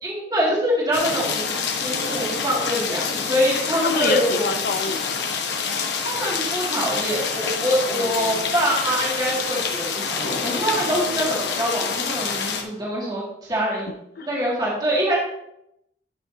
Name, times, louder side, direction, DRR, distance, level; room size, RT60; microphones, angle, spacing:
voice 1, 0.0-4.5 6.0-13.9 14.2-15.2, equal, 25° right, -5 dB, 2.2 m, -24 dB
sound 1, 0.9-12.6, left 5 dB, 75° left, 1.1 m, -27 dB
voice 2, 3.8-5.3 7.9-8.5 13.7-14.3, left 3 dB, 55° left, 7 dB, 0.6 m, -28 dB
11.5 x 6.3 x 2.8 m, 0.80 s
head